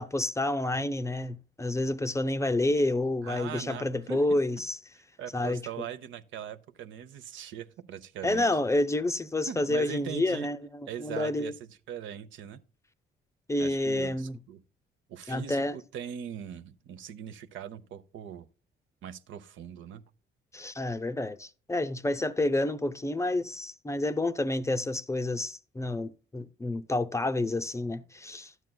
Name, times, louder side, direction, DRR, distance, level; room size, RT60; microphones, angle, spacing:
voice 1, 0.0-4.8 5.3-5.6 8.2-11.5 13.5-14.4 15.3-15.8 20.5-28.5, left 2 dB, 15° left, 0.5 m, -29 dB
voice 2, 3.2-4.6 4.9-8.5 9.5-10.5 10.9-12.6 13.6-14.6 15.1-18.5 19.0-20.0, right 9 dB, 75° right, 0.7 m, -41 dB
12.5 x 9.1 x 2.2 m
cardioid pair, 90°, 20 cm